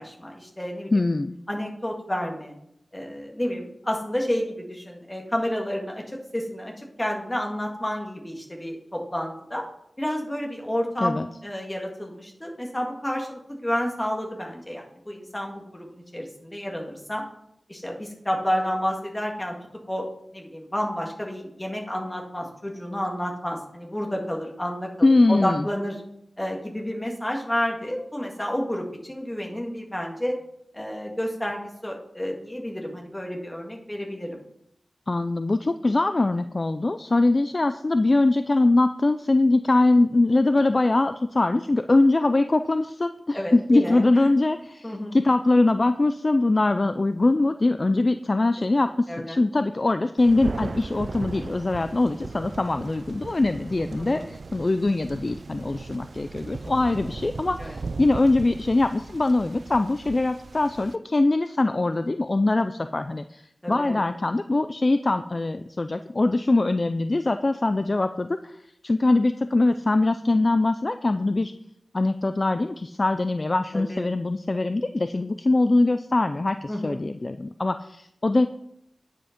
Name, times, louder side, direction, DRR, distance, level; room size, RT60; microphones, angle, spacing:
voice 1, 0.0-0.9 1.5-2.6 2.9-9.6 10.0-17.2 17.7-19.6 19.9-20.1 20.3-26.0 26.4-30.4 30.7-34.4 43.3-44.0 44.8-45.1 49.1-49.4 54.0-54.3 57.6-57.7 63.6-64.0 73.7-74.1 76.7-77.0, equal, 15° left, 0 dB, 1.9 m, -30 dB
voice 2, 0.9-1.4 11.0-11.3 25.0-25.7 35.1-63.4 63.7-71.5 71.9-78.5, left 2 dB, 40° left, 10 dB, 0.3 m, -22 dB
Thunder, 50.2-60.9, right 3 dB, 65° right, 0.4 m, -37 dB
9.5 x 5.1 x 5.2 m, 0.77 s
wide cardioid pair, 70°, 0 cm